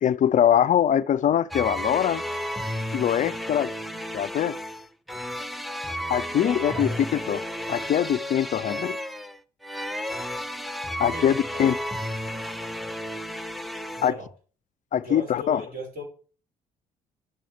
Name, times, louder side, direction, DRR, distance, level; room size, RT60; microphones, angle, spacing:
voice 1, 0.0-2.2 2.9-3.7 4.1-4.6 6.1-7.4 7.7-9.0 11.0-11.8 14.0-14.1 14.9-15.6, left 9 dB, 45° left, 0.4 m, -23 dB
sound 1, 1.5-14.1, equal, ahead, 0.8 m, -33 dB
voice 2, 6.4-7.0 11.1-11.7 13.9-14.3 15.0-16.0, equal, 55° right, 5.4 m, -38 dB
11.0 x 7.5 x 3.5 m
hypercardioid pair, 55°, 18 cm